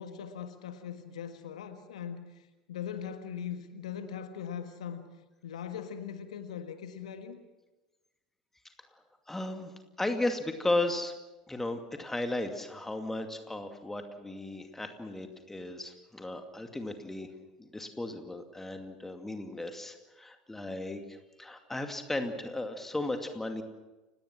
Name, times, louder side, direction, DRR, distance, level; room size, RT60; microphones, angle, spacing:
voice 1, 0.0-5.0 5.4-7.4, left 8 dB, 65° left, 8 dB, 1.6 m, -40 dB
voice 2, 8.9-11.1 11.5-17.3 17.6-23.6, left 2 dB, 10° left, 6 dB, 2.4 m, -35 dB
29.5 x 18.5 x 6.1 m, 1.1 s
figure-of-eight pair, 75°, 4 cm